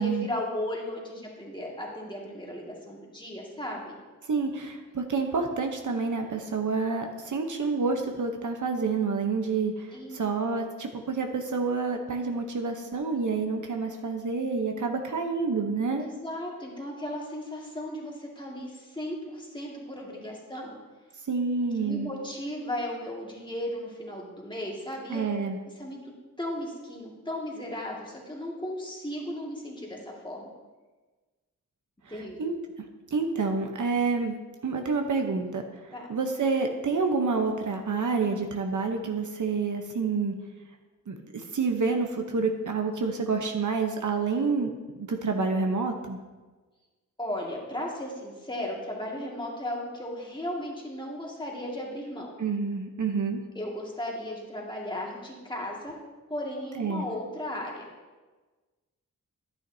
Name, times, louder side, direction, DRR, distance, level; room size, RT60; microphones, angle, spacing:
voice 1, 0.0-4.0 9.9-10.2 15.9-20.8 21.8-25.3 25.6-26.1 26.4-30.5 32.1-32.4 35.9-36.1 47.2-52.3 53.6-56.0 56.3-57.9, left 1 dB, 15° left, -2 dB, 2.0 m, -36 dB
voice 2, 4.3-16.0 21.3-22.1 25.1-25.6 32.4-32.5 33.1-34.3 34.6-40.3 41.1-44.7 45.0-46.2 52.4-53.4 56.8-57.0, right 4 dB, 65° right, 3 dB, 0.9 m, -28 dB
11.0 x 9.3 x 2.7 m, 1.3 s
wide cardioid pair, 80°, 33 cm